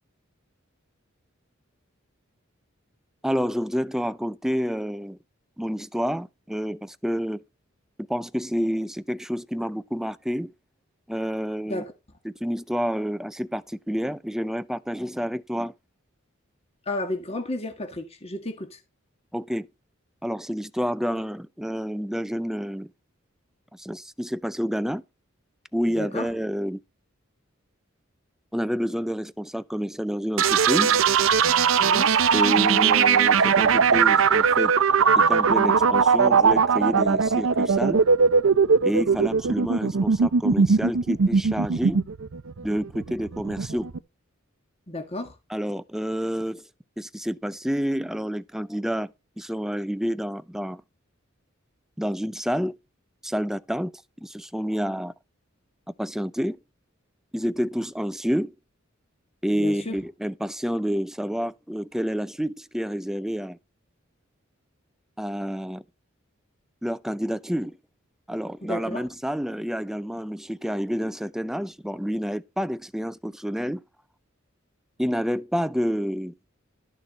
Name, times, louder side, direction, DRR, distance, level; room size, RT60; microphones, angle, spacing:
voice 1, 3.2-5.2 5.6-7.4 8.1-10.5 11.1-11.8 12.2-15.7 19.3-19.7 20.2-22.9 23.7-25.0 25.7-26.8 28.5-31.0 32.3-34.7 35.1-38.0 38.8-42.0 42.6-43.9 45.5-46.6 47.0-50.8 52.0-52.7 53.2-53.9 54.2-55.1 56.0-56.6 57.3-58.5 59.4-63.6 65.2-65.8 66.8-67.8 68.3-73.8 75.0-76.3, equal, ahead, 0.5 m, -29 dB
voice 2, 16.9-18.8 26.0-26.3 31.8-32.1 44.9-45.3 59.6-60.0 68.6-69.0, left 1 dB, 30° left, 1.6 m, -32 dB
sound 1, 30.4-44.0, right 6 dB, 75° right, 0.6 m, -20 dB
12.0 x 6.5 x 4.1 m
head